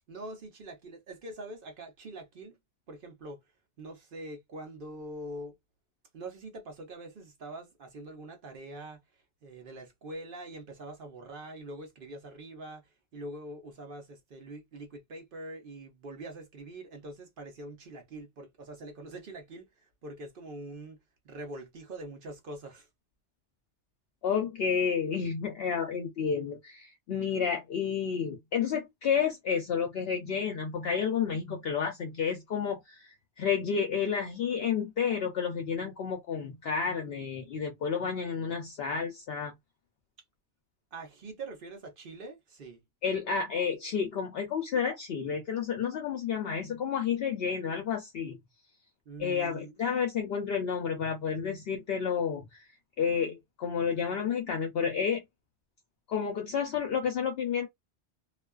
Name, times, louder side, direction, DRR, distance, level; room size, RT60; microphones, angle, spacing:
voice 1, 0.1-2.6 2.9-3.4 3.8-5.5 6.1-9.0 9.4-22.9 40.9-42.8 49.1-49.7, right 1 dB, 55° right, 1.0 m, -44 dB
voice 2, 24.2-39.5 43.0-48.4 49.2-52.6 53.0-55.2 56.1-57.7, left 6 dB, 65° left, 0.7 m, -30 dB
2.4 x 2.3 x 2.2 m
omnidirectional pair, 1.2 m